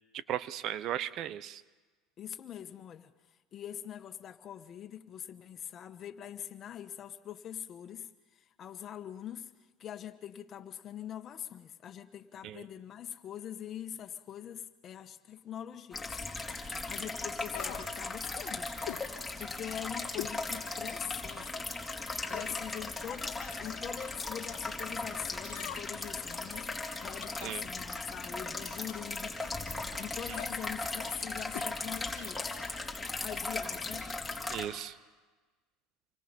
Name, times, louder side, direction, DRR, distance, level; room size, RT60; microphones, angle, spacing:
voice 1, 0.3-1.6 12.4-12.6 27.4-27.6 34.5-34.9, right 11 dB, 55° right, 1.0 m, -36 dB
voice 2, 2.2-3.1 3.5-8.1 8.6-9.5 9.8-16.1 16.9-18.7 19.4-21.7 22.3-29.6 30.0-32.5 33.2-34.1, left 10 dB, 40° left, 1.7 m, -43 dB
sound 1, 15.9-34.7, left 3 dB, 10° left, 4.4 m, -38 dB
sound 2, 17.5-17.9 18.9-19.1 20.2-20.4 20.9-21.0 22.2-22.6 23.5-23.9 25.5-26.1 27.2-27.6 28.9-29.2 30.3-30.5 31.5-31.7 32.0-32.1, left 21 dB, 70° left, 0.7 m, -43 dB
28.5 x 25.0 x 5.5 m
hypercardioid pair, 90°, 0 cm